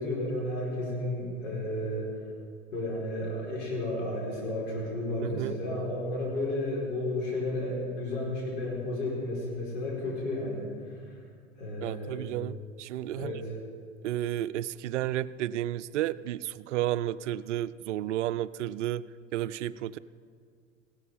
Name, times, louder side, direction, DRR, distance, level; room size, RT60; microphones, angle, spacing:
voice 1, 0.0-2.1 2.7-11.1 11.6-12.3 13.1-13.5, left 1 dB, 65° left, -3 dB, 4.8 m, -33 dB
voice 2, 5.2-5.6 11.8-13.3 14.0-19.0 19.3-20.0, right 13 dB, 65° right, 16 dB, 0.5 m, -32 dB
16.0 x 12.0 x 5.4 m, 2.1 s
figure-of-eight pair, 90°, 39 cm